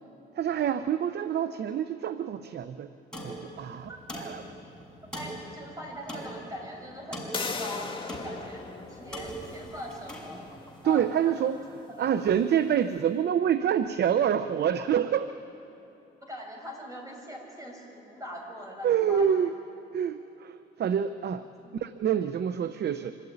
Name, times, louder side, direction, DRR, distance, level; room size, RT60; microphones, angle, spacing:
voice 1, 0.4-2.9 3.2-3.9 4.2-4.4 10.8-11.6 12.0-15.3 18.8-19.5 19.9-21.5 21.7-23.1, right 9 dB, 55° right, 12 dB, 0.7 m, -27 dB
sound 1, 3.1-10.9, equal, 5° left, 5.8 m, -42 dB
voice 2, 5.1-10.4 10.8-11.5 11.9-12.1 15.3-15.4 16.3-19.5 21.6-21.9, equal, 15° right, 0 dB, 6.6 m, -42 dB
sound 2, 7.3-12.9, left 4 dB, 25° left, 1.8 m, -40 dB
25.5 x 12.5 x 9.9 m, 3.0 s
cardioid pair, 90°, 20 cm